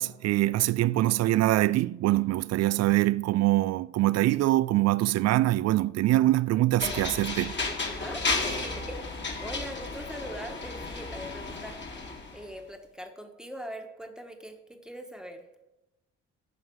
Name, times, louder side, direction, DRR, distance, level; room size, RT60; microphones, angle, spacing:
voice 1, 0.0-7.5, right 16 dB, 55° right, 0.4 m, -24 dB
sound 1, 6.8-12.4, left 3 dB, 35° left, 2.3 m, -33 dB
voice 2, 7.8-15.5, equal, ahead, 1.5 m, -42 dB
8.1 x 5.6 x 7.9 m
supercardioid pair, 60°, 31 cm